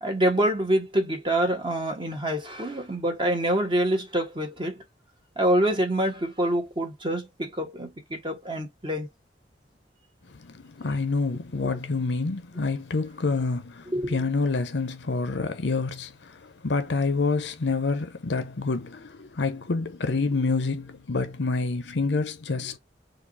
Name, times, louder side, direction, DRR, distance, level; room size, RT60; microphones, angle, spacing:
voice 1, 0.0-4.8 5.4-9.1 13.9-14.2, right 1 dB, 30° right, 1.4 m, -26 dB
voice 2, 10.3-22.8, left 3 dB, 80° left, 0.7 m, -27 dB
4.7 x 2.5 x 4.0 m
head